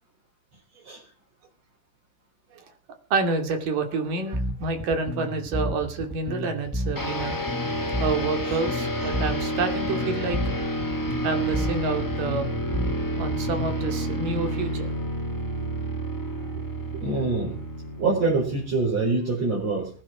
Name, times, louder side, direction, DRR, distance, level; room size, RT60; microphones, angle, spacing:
voice 1, 3.1-7.4 8.0-10.5 11.2-12.6 13.2-14.9 15.6-15.7 16.9-17.0, right 4 dB, 75° right, 6 dB, 4.2 m, -28 dB
Bass guitar, 4.3-13.9, equal, 5° left, 0.8 m, -32 dB
sound 1, 6.9-19.2, equal, 30° left, 0.3 m, -30 dB
voice 2, 17.0-17.6 18.0-19.9, right 3 dB, 50° right, -4 dB, 5.7 m, -25 dB
20.0 x 10.0 x 6.0 m, 0.40 s
omnidirectional pair, 3.8 m